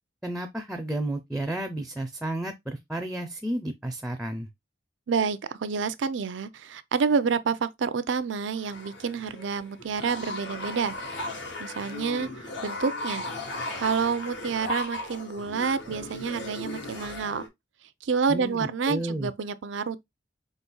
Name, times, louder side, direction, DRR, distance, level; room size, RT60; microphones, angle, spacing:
voice 1, 0.2-4.5 18.3-19.3, right 1 dB, ahead, 0.4 m, -32 dB
voice 2, 5.1-11.0 11.2-13.2 13.8-17.5 18.0-20.0, right 5 dB, 85° right, 0.5 m, -28 dB
sound 1, 8.5-17.5, left 2 dB, 70° left, 1.3 m, -36 dB
5.0 x 4.1 x 2.3 m
head